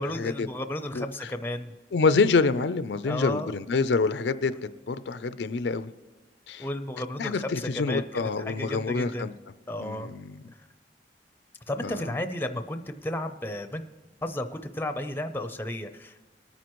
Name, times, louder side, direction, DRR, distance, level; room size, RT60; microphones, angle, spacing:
voice 1, 0.0-1.7 3.0-3.5 6.6-9.3 9.7-10.1 11.7-13.8 14.2-16.2, left 1 dB, 10° left, 8 dB, 0.5 m, -33 dB
voice 2, 0.9-1.3 1.9-4.5 4.9-5.9 6.5-6.7 7.2-9.3 9.8-10.4 11.8-12.1, left 4 dB, 80° left, 13 dB, 0.4 m, -26 dB
19.0 x 9.3 x 3.0 m, 1.2 s
head